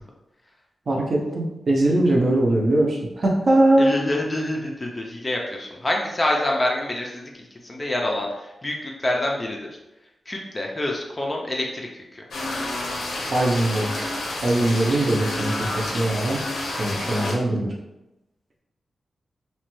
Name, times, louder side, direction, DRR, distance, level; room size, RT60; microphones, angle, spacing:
voice 1, 0.9-4.0 13.3-16.4 16.8-17.7, right 1 dB, 40° right, -1 dB, 0.5 m, -21 dB
voice 2, 3.8-7.2 7.7-8.3 8.6-9.6 10.3-11.7, left 1 dB, 20° left, 0 dB, 0.4 m, -26 dB
sound 1, 12.3-17.3, left 2 dB, 80° left, 0.6 m, -29 dB
3.0 x 2.2 x 3.0 m, 0.95 s
wide cardioid pair, 170°, 0 cm